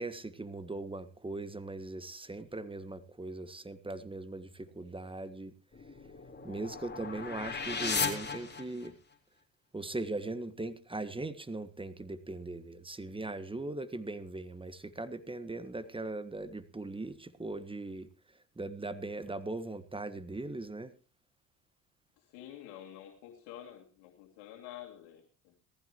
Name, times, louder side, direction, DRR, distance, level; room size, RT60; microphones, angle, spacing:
voice 1, 0.0-5.5 6.4-8.9 9.7-18.1 18.6-20.9, right 2 dB, 15° right, 1.4 m, -39 dB
sound 1, 5.7-9.1, left 5 dB, 25° left, 3.8 m, -36 dB
voice 2, 22.2-25.6, left 11 dB, 75° left, 2.6 m, -49 dB
19.0 x 15.0 x 3.0 m
supercardioid pair, 70°, 41 cm